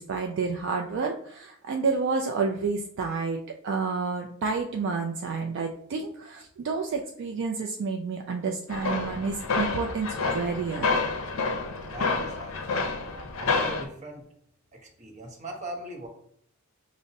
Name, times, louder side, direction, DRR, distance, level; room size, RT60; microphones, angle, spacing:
voice 1, 0.0-11.0, right 4 dB, 60° right, 2 dB, 0.3 m, -30 dB
sound 1, 8.7-13.8, left 4 dB, 75° left, 0.5 m, -29 dB
voice 2, 11.9-12.9 13.4-14.2 14.7-16.1, right 1 dB, 35° right, 1 dB, 0.7 m, -39 dB
5.1 x 2.0 x 2.6 m, 0.67 s
head